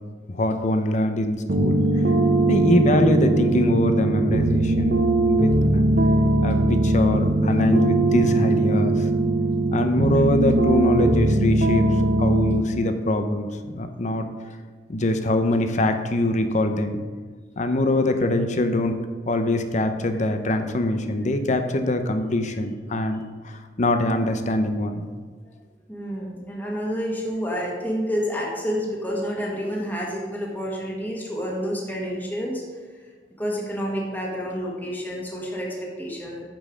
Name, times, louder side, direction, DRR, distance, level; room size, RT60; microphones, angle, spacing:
voice 1, 0.3-1.8 2.5-5.5 6.4-9.1 9.7-11.9 12.2-14.3 14.9-17.0 17.6-19.0 19.3-25.0, left 1 dB, 45° left, 7 dB, 0.7 m, -23 dB
sound 1, 1.5-12.6, right 2 dB, 55° right, 0.8 m, -20 dB
voice 2, 9.9-10.2 13.9-14.0 25.9-32.6 33.4-36.4, equal, 10° left, -3 dB, 1.6 m, -29 dB
8.9 x 5.4 x 5.0 m, 1.5 s
head